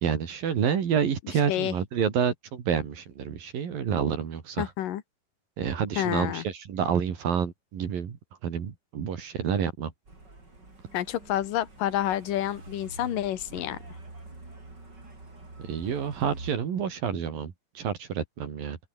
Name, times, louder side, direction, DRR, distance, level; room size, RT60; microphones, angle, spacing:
voice 1, 0.0-4.7 5.6-8.2 8.4-9.9 15.6-18.8, right 7 dB, 75° right, 4.7 m, -28 dB
voice 2, 4.6-5.0 6.0-6.4 10.9-13.8, left 12 dB, 75° left, 3.1 m, -29 dB
Truck, 10.1-16.5, right 2 dB, 30° right, 6.9 m, -46 dB
open air
omnidirectional pair, 4.0 m